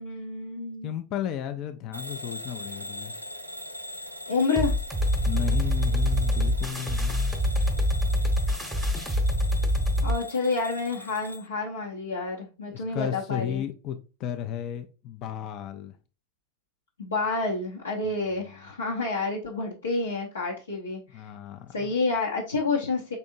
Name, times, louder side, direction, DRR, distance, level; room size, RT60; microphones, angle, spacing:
voice 1, 0.0-0.9 4.3-4.7 10.0-13.6 17.0-21.3 21.7-23.2, left 3 dB, 70° left, 0.9 m, -29 dB
voice 2, 0.8-3.1 5.2-7.3 12.6-16.0 18.4-18.5 21.1-21.9, left 10 dB, 35° left, 0.5 m, -34 dB
Bell / Alarm, 1.9-11.5, equal, 90° right, 0.5 m, -40 dB
sound 1, 4.6-10.2, equal, ahead, 1.0 m, -25 dB
5.5 x 3.5 x 2.6 m
figure-of-eight pair, 90°, 0 cm